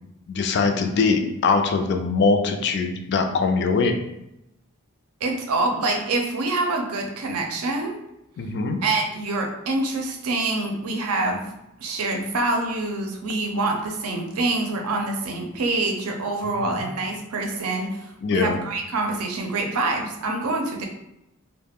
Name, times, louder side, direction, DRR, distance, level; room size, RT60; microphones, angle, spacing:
voice 1, 0.3-4.0 8.4-8.8 16.7-16.9 18.2-18.6, left 4 dB, 50° left, 5 dB, 0.3 m, -22 dB
voice 2, 5.2-8.0 8.8-11.5 11.8-20.8, right 2 dB, 80° right, 2 dB, 0.5 m, -26 dB
2.3 x 2.0 x 3.4 m, 0.86 s
head